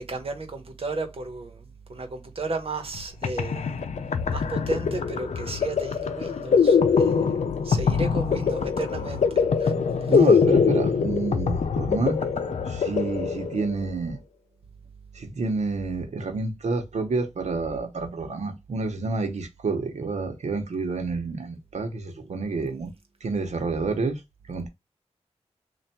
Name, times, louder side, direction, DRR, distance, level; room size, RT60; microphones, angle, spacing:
voice 1, 0.1-3.8 4.3-9.2 9.6-9.7 10.0-10.1, right 3 dB, 55° right, 1.1 m, -34 dB
sound 1, 2.9-3.0 3.2-13.8, left 6 dB, 85° left, 0.5 m, -23 dB
voice 2, 10.1-12.2 12.7-14.2 15.1-22.9 23.2-24.2 24.5-24.7, right 3 dB, 80° right, 1.0 m, -29 dB
3.4 x 2.5 x 4.3 m
wide cardioid pair, 85°, 11 cm